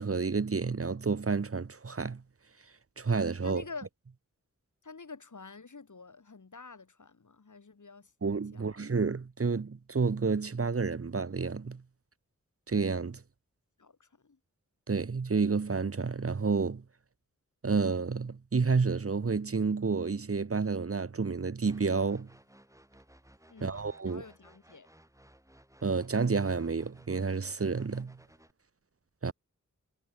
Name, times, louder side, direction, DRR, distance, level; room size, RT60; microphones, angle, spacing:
voice 1, 0.0-2.2 3.0-3.6 8.2-11.8 12.7-13.2 14.9-16.8 17.6-22.3 23.6-24.2 25.8-28.2 29.2-29.3, right 4 dB, 45° right, 1.0 m, -30 dB
voice 2, 3.4-3.9 4.8-8.1 8.5-8.8 13.8-14.4 23.5-24.9, left 4 dB, 70° left, 4.2 m, -48 dB
sound 1, 21.7-28.5, right 1 dB, 10° right, 7.1 m, -60 dB
wide cardioid pair, 75°, 31 cm